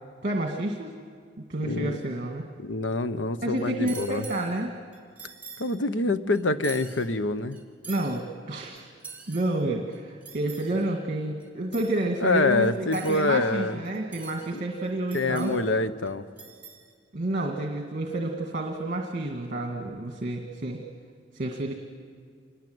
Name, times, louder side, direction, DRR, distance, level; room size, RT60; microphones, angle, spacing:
voice 1, 0.2-1.0 1.5-2.5 3.4-4.7 7.9-8.9 9.3-15.5 17.1-20.8 21.3-21.7, right 1 dB, 45° right, 2 dB, 1.9 m, -29 dB
voice 2, 1.6-2.0 2.6-4.2 5.6-7.6 12.2-13.8 14.5-14.6 15.1-16.3, left 2 dB, 80° left, 12 dB, 1.0 m, -26 dB
sound 1, 3.6-4.6 4.9-5.8 6.3-7.1 7.5-8.2 8.8-9.6 9.9-10.9 11.4-11.5 11.7-12.0 12.6-13.4 13.8-14.6 14.8-15.7 16.1-16.2 16.4-16.9, right 5 dB, 10° right, 3.3 m, -45 dB
27.0 x 21.5 x 8.0 m, 2.1 s
head